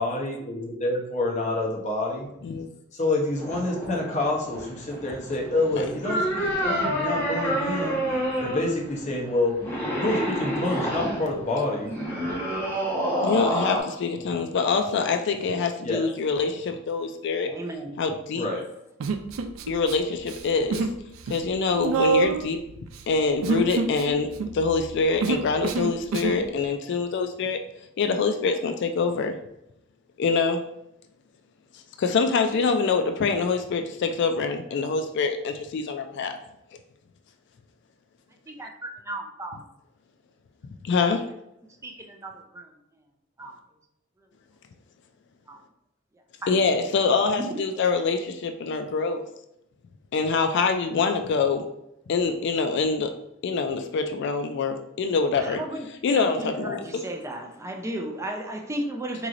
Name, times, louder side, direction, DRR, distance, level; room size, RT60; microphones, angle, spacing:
voice 1, 0.0-2.3 2.9-8.0 8.4-9.6 10.0-11.9 15.8-16.1 18.3-18.6, left 2 dB, 35° left, -1 dB, 0.8 m, -27 dB
sound 1, 3.4-13.8, equal, 10° left, 1.2 m, -29 dB
voice 2, 13.2-17.5 18.0-18.5 19.7-20.9 21.3-22.6 23.1-27.6 28.0-29.4 30.2-30.6 32.0-36.3 40.8-41.2 46.5-49.2 50.1-51.7 52.1-53.1 53.4-55.6 56.0-57.0, left 4 dB, 60° left, 6 dB, 0.3 m, -25 dB
voice 3, 17.5-18.1 38.5-39.6 41.8-42.7 43.4-43.5 45.5-45.6 46.4-46.5 47.4-47.5 55.4-59.3, right 1 dB, 15° right, 3 dB, 0.4 m, -35 dB
Human voice, 19.0-19.9 20.2-21.0 21.2-26.4, right 4 dB, 75° right, 0.3 m, -27 dB
3.8 x 3.1 x 2.5 m, 0.81 s
head